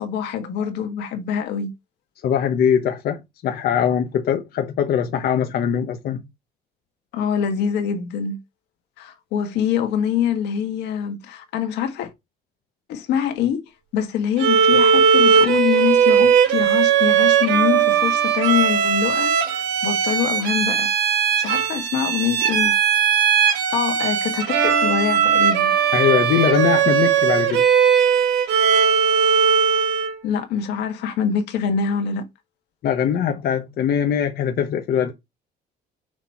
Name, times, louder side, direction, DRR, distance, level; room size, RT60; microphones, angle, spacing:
voice 1, 0.0-1.7 7.1-8.4 9.0-12.1 12.9-13.6 13.9-19.3 19.8-20.9 21.4-22.7 23.4-25.7 30.2-32.2, left 8 dB, 85° left, 1.7 m, -24 dB
voice 2, 2.2-6.2 25.9-27.6 32.8-35.1, left 8 dB, 65° left, 1.0 m, -21 dB
Bowed string instrument, 14.4-30.2, right 7 dB, 90° right, 1.6 m, -18 dB
6.2 x 3.1 x 5.8 m
cardioid pair, 110°, 17 cm